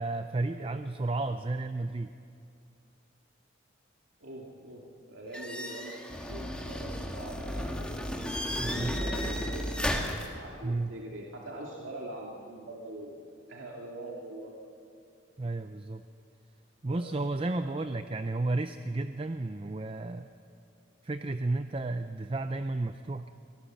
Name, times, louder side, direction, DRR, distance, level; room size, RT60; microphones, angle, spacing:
voice 1, 0.0-2.1 8.5-9.0 10.6-10.9 15.4-16.0 16.8-20.3 21.0-23.3, right 2 dB, 30° right, 9 dB, 0.5 m, -32 dB
voice 2, 4.2-6.0 6.3-8.0 8.7-9.9 10.2-14.6 16.9-17.0 17.4-17.8, right 1 dB, 85° right, -2 dB, 2.4 m, -43 dB
sound 1, 5.3-10.3, equal, 5° left, 1.7 m, -33 dB
24.0 x 18.5 x 7.2 m, 2.4 s
head